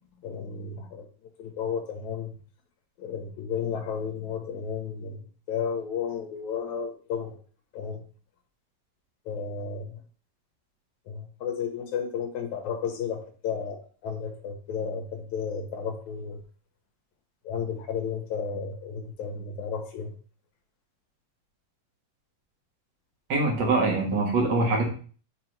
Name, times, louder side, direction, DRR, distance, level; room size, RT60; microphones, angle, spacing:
voice 1, 0.2-1.1 1.4-2.4 3.0-7.3 7.7-8.0 9.3-10.0 11.1-16.4 17.4-20.1, left 6 dB, 65° left, 3 dB, 2.1 m, -33 dB
voice 2, 23.3-24.9, right 3 dB, 70° right, -1 dB, 1.0 m, -23 dB
6.5 x 3.4 x 4.5 m, 0.41 s
omnidirectional pair, 4.4 m